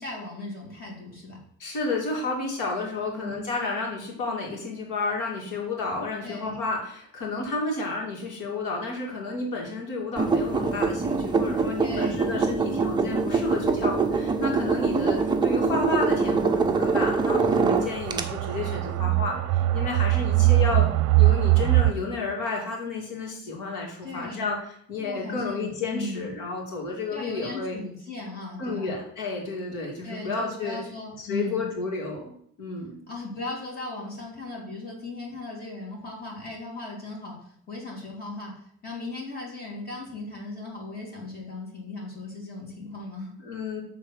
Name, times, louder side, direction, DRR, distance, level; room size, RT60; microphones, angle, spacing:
voice 1, 0.0-1.4 3.0-3.4 6.2-6.6 11.8-12.2 20.3-20.9 24.0-24.5 25.0-26.3 27.1-28.9 30.0-31.7 33.1-43.3, left 2 dB, 30° left, -3 dB, 2.9 m, -37 dB
voice 2, 1.6-20.9 21.2-24.6 24.9-27.8 28.6-30.8 31.3-33.0 43.4-43.8, left 3 dB, 70° left, -1 dB, 2.5 m, -31 dB
sound 1, 10.2-18.2, right 4 dB, 15° right, 0.5 m, -24 dB
sound 2, 13.7-13.8 14.2-14.3 14.8-14.9 15.8-21.9, right 18 dB, 60° right, 0.6 m, -23 dB
6.8 x 3.7 x 6.4 m, 0.67 s
cardioid pair, 145°, 32 cm